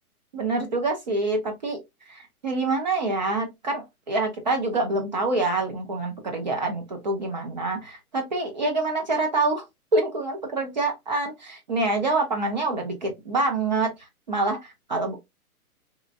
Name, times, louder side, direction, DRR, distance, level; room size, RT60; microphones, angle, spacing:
voice 1, 0.3-1.8 2.1-9.6 9.9-13.9 14.3-15.2, right 2 dB, 30° right, 0.5 m, -26 dB
3.0 x 2.5 x 2.3 m
hypercardioid pair, 160°, 45 cm